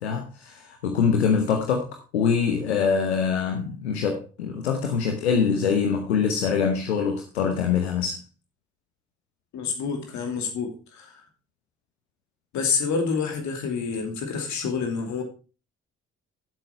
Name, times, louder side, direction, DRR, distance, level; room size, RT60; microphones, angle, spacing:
voice 1, 0.0-8.2, left 6 dB, 90° left, 0.9 m, -24 dB
voice 2, 9.5-11.2 12.5-15.2, left 5 dB, 65° left, 2.7 m, -28 dB
10.5 x 7.9 x 4.4 m
hypercardioid pair, 45°, 32 cm